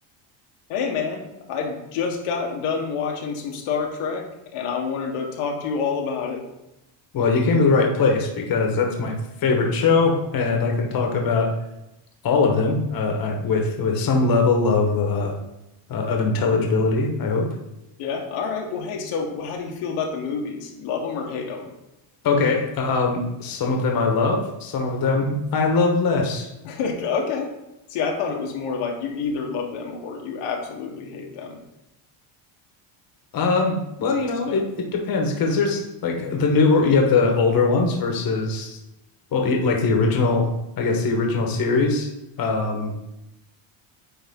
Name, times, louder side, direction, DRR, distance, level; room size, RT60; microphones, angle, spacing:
voice 1, 0.7-4.3 4.5-6.4 18.0-21.7 26.6-27.5 27.9-31.6 34.2-34.6, left 5 dB, 80° left, 1 dB, 1.4 m, -28 dB
voice 2, 7.1-9.1 9.4-11.5 12.2-15.3 15.9-17.5 22.2-26.5 33.3-38.8 39.3-40.4 40.8-42.1 42.4-42.9, left 4 dB, 45° left, 2 dB, 1.3 m, -21 dB
9.4 x 3.6 x 3.7 m, 0.91 s
cardioid pair, 125°, 49 cm